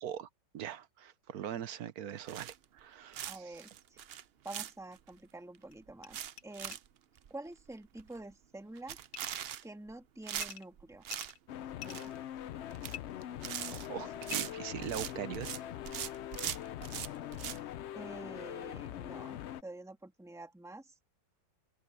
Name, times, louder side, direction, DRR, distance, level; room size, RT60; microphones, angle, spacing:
voice 1, 0.5-3.6 13.7-15.6, right 10 dB, 65° right, 1.2 m, -41 dB
sound 1, 2.3-2.8 3.1-5.1 5.5-5.6 5.9-6.9 7.2-7.3 7.7-7.8 8.0-8.3 8.8-9.9 10.3-11.3 11.6-12.2 12.6-13.0 13.2-15.6 15.8-17.6, right 10 dB, 85° right, 0.5 m, -41 dB
voice 2, 3.3-4.1 4.4-6.2 6.4-6.8 7.3-9.0 9.6-11.0 11.8-12.1 17.9-20.9, right 2 dB, ahead, 1.9 m, -48 dB
sound 2, 4.9-5.0 5.7-5.8 6.0-6.1 6.4-6.5 6.7-6.8 9.1-9.4 10.4-10.7 11.1-12.1 12.9-13.0 14.3-14.4, left 10 dB, 65° left, 1.7 m, -46 dB
sound 3, 11.5-19.6, left 11 dB, 85° left, 0.6 m, -43 dB
open air
omnidirectional pair, 1.8 m